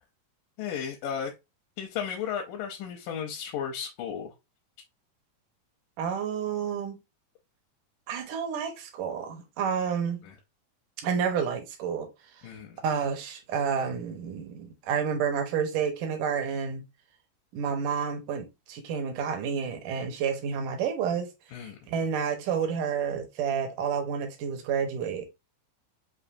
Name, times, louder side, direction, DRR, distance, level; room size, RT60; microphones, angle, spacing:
voice 1, 0.6-1.3 1.8-4.3 10.2-10.3 12.4-12.8 21.5-21.8, left 8 dB, 85° left, 2.3 m, -34 dB
voice 2, 6.0-7.0 8.1-10.2 11.0-12.1 12.8-16.8 17.5-21.3 21.6-25.3, right 7 dB, 80° right, 2.5 m, -30 dB
7.1 x 2.7 x 2.6 m
omnidirectional pair, 3.8 m